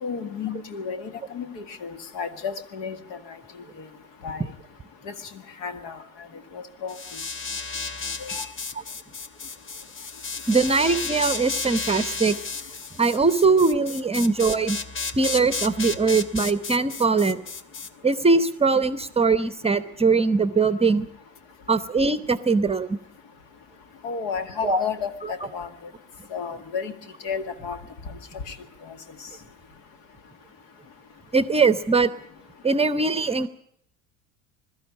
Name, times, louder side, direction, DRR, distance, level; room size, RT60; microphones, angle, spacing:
voice 1, 0.0-3.0 3.3-3.4 4.2-4.4 5.1-5.2 5.6-6.0 6.5-7.0 8.2-8.4 24.0-25.7 26.3-26.9 27.2-27.8 28.5-28.6, left 6 dB, 55° left, 9 dB, 2.0 m, -32 dB
sound 1, 6.9-17.9, left 4 dB, 30° left, 1.2 m, -33 dB
voice 2, 10.5-12.4 13.0-14.8 15.1-17.4 18.0-21.1 21.7-23.0 24.6-24.8 25.2-25.3 31.3-32.1 32.6-33.5, right 4 dB, 15° right, 13 dB, 0.9 m, -21 dB
21.5 x 13.0 x 9.6 m, 0.73 s
figure-of-eight pair, 70°, 42 cm